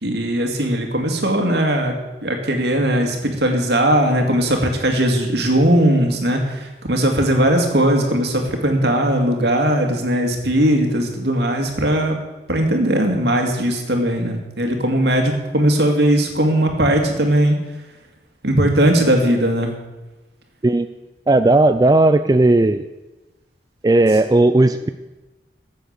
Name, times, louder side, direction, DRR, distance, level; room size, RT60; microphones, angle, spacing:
voice 1, 0.0-1.9 2.2-12.2 12.5-17.6 18.4-19.7, right 1 dB, 70° right, 3 dB, 2.2 m, -18 dB
voice 2, 21.3-22.8 23.8-24.9, right 2 dB, 20° right, 9 dB, 0.4 m, -15 dB
14.5 x 7.8 x 6.6 m, 1.1 s
head